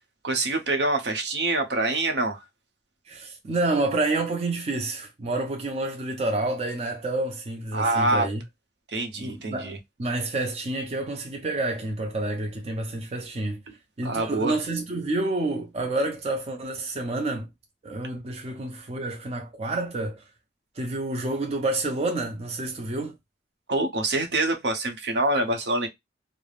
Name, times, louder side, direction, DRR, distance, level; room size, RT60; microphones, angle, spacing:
voice 1, 0.2-2.4 7.7-8.3 8.9-9.8 13.7-13.8 14.0-14.6 23.7-25.9, right 2 dB, 70° right, 0.8 m, -25 dB
voice 2, 3.1-8.4 9.2-9.7 10.0-13.6 14.0-17.5 17.8-20.2 20.8-23.1, right 2 dB, 35° right, 0.5 m, -29 dB
3.3 x 2.0 x 2.3 m
head